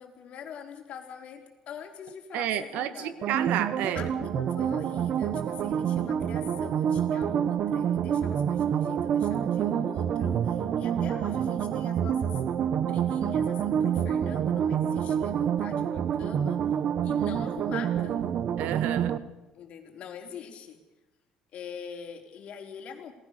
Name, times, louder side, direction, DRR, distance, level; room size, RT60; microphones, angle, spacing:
voice 1, 0.0-3.3 3.9-12.4 12.8-16.6 17.0-18.3 19.5-20.8 21.5-23.1, left 7 dB, 55° left, 3 dB, 4.2 m, -44 dB
voice 2, 2.3-4.1 18.6-19.2, right 11 dB, 75° right, 13 dB, 1.7 m, -30 dB
sound 1, 3.2-19.2, right 8 dB, 50° right, 1.2 m, -27 dB
27.5 x 19.0 x 6.8 m, 1.0 s
cardioid pair, 130°, 3 cm